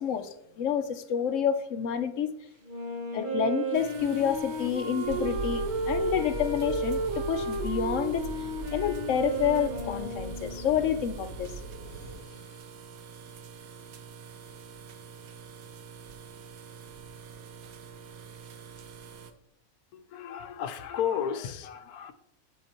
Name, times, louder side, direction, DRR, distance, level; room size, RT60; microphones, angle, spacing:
voice 1, 0.0-2.3 3.1-11.5, left 8 dB, 65° left, 10 dB, 0.9 m, -29 dB
Wind instrument woodwind instrument, 2.6-11.2, right 2 dB, 35° right, 1.1 m, -33 dB
sound 1, 3.7-19.3, right 7 dB, 75° right, 1.2 m, -47 dB
sound 2, 5.0-12.2, right 4 dB, 55° right, 1.0 m, -39 dB
voice 2, 19.9-22.1, left 8 dB, 85° left, 9 dB, 1.1 m, -33 dB
8.4 x 8.3 x 2.9 m, 0.78 s
omnidirectional pair, 1.5 m